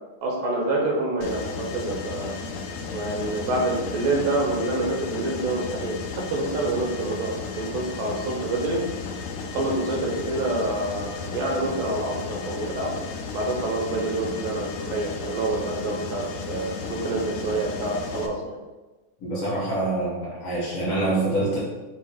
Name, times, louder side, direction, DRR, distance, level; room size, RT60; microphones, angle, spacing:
voice 1, 0.2-2.3 2.9-6.0 6.3-8.8 9.5-12.9 13.3-18.6, right 2 dB, 85° right, -1 dB, 2.5 m, -27 dB
Mechanisms, 1.2-18.3, left 5 dB, 80° left, 1.7 m, -34 dB
voice 2, 19.2-21.6, right 2 dB, 60° left, -6 dB, 2.1 m, -25 dB
5.3 x 2.1 x 4.7 m, 1.1 s
omnidirectional pair, 3.7 m